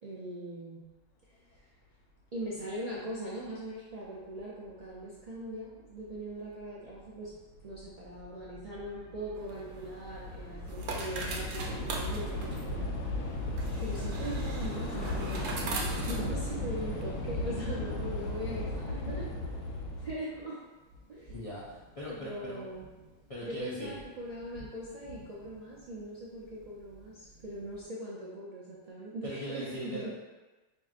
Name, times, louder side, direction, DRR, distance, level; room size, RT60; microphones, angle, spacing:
voice 1, 0.0-0.8 1.5-1.7 2.3-7.3 7.6-13.2 13.8-19.3 20.0-20.6 21.1-21.3 22.1-22.9 23.4-30.1, right 1 dB, 60° right, -7 dB, 0.4 m, -41 dB
Train / Subway metro underground, 6.1-6.2 7.1-7.3 7.6-20.1, left 2 dB, 75° left, 0.9 m, -36 dB
sound 1, 9.4-17.0, right 3 dB, 75° right, 0.9 m, -42 dB
Thunder, 14.6-27.8, equal, 30° left, 1.0 m, -50 dB
voice 2, 21.3-22.6 23.3-24.0 29.2-30.2, equal, 55° left, -8 dB, 0.4 m, -40 dB
4.4 x 2.5 x 2.4 m, 1.2 s
omnidirectional pair, 1.3 m